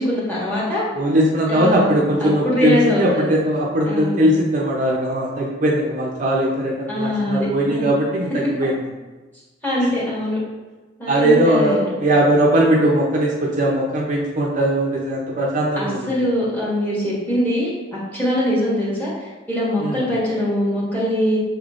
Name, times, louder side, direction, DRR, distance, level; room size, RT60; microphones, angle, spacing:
voice 1, 0.0-0.8 1.5-3.3 3.9-4.2 6.9-7.9 9.6-10.4 11.0-11.9 15.7-21.4, left 1 dB, 10° left, -7 dB, 1.4 m, -22 dB
voice 2, 0.9-8.7 11.1-16.1 19.8-20.1, right 1 dB, 40° right, -2 dB, 0.5 m, -19 dB
5.8 x 3.5 x 2.5 m, 1.2 s
head